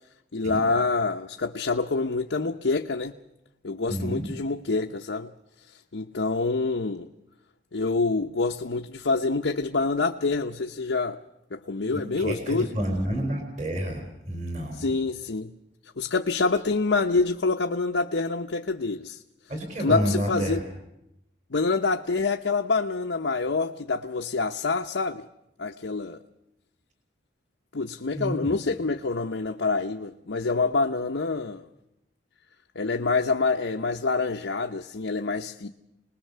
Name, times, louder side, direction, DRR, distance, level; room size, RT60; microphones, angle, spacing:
voice 1, 0.3-3.1 3.6-5.3 5.9-7.1 7.7-11.2 11.5-12.7 14.7-15.5 16.0-19.2 19.8-20.6 21.5-25.2 25.6-26.2 27.7-31.7 32.7-35.7, left 3 dB, 80° left, 0.8 m, -26 dB
voice 2, 3.9-4.3 12.2-14.9 19.5-20.6 28.1-28.6, equal, 40° right, 4.3 m, -29 dB
25.5 x 20.0 x 6.7 m
head